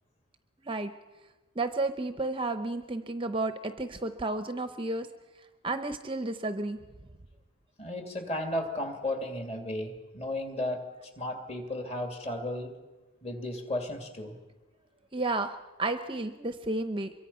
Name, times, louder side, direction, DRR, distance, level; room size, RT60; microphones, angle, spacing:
voice 1, 1.6-5.1 5.6-6.8 15.1-17.1, right 2 dB, 25° right, 9 dB, 0.7 m, -32 dB
voice 2, 7.8-10.8 11.2-12.7 13.2-14.4, left 1 dB, 30° left, 4 dB, 2.7 m, -34 dB
25.0 x 23.0 x 5.7 m, 1.2 s
head